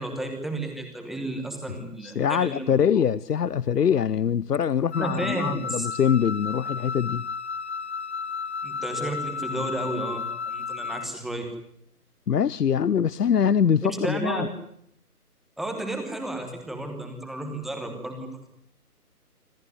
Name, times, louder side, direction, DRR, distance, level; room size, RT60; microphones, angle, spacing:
voice 1, 0.0-2.7 5.0-5.9 8.6-11.5 13.9-14.5 15.6-18.3, right 2 dB, ahead, 1.0 m, -32 dB
voice 2, 1.8-7.2 12.3-14.5, left 8 dB, 80° left, 0.8 m, -23 dB
Wind instrument woodwind instrument, 4.9-11.1, left 5 dB, 45° left, 0.9 m, -33 dB
26.0 x 15.0 x 9.4 m
figure-of-eight pair, 155°, 46 cm